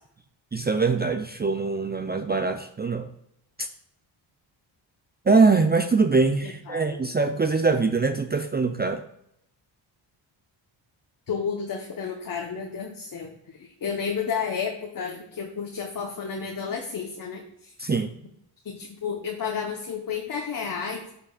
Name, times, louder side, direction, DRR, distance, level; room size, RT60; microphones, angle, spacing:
voice 1, 0.5-3.1 5.3-9.0 17.8-18.1, right 4 dB, 20° right, 7 dB, 0.5 m, -23 dB
voice 2, 6.4-7.0 11.3-17.4 18.6-21.1, left 6 dB, 40° left, 1 dB, 1.1 m, -31 dB
11.0 x 5.0 x 2.4 m, 0.75 s
cardioid pair, 75°, 49 cm